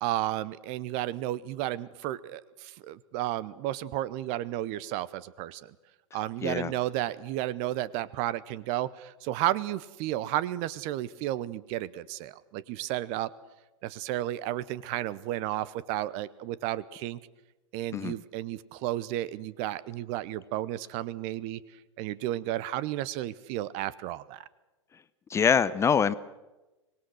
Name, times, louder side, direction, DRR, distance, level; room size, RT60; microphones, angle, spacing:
voice 1, 0.0-5.7 6.1-13.3 13.8-17.2 17.7-21.6 22.0-24.4, right 14 dB, 40° right, 19 dB, 0.9 m, -32 dB
voice 2, 6.4-6.7 17.9-18.1 25.3-26.1, left 7 dB, 15° left, 16 dB, 0.7 m, -24 dB
24.5 x 19.5 x 6.4 m, 1.1 s
figure-of-eight pair, 95°, 16 cm